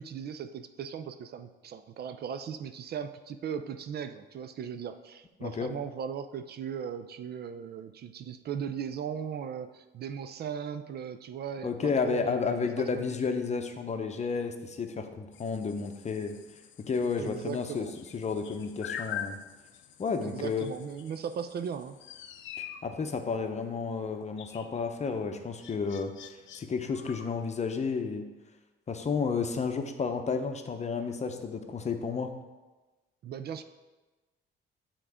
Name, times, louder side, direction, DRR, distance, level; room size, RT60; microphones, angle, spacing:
voice 1, 0.0-13.3 17.2-17.9 20.2-22.0 33.2-33.6, right 8 dB, 55° right, 10 dB, 0.4 m, -38 dB
voice 2, 5.4-5.7 11.6-16.4 16.8-17.9 18.1-19.4 20.0-20.7 22.6-26.1 26.5-28.3 28.9-32.3, left 5 dB, 35° left, 6 dB, 0.7 m, -31 dB
sound 1, 15.3-27.5, left 9 dB, 70° left, 0.5 m, -45 dB
7.0 x 3.8 x 4.8 m, 1.2 s
cardioid pair, 90°, 20 cm